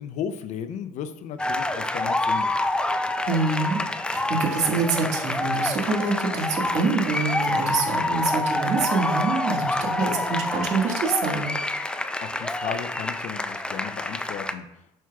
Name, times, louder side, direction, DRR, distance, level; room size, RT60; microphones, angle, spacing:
voice 1, 0.0-2.5 12.2-14.6, left 8 dB, 55° left, 10 dB, 0.6 m, -34 dB
sound 1, 1.4-14.5, left 2 dB, 5° left, 0.3 m, -27 dB
voice 2, 3.3-3.8 4.1-11.5, right 4 dB, 50° right, 1 dB, 1.8 m, -26 dB
8.8 x 6.1 x 2.4 m, 0.83 s
cardioid pair, 120°, 15 cm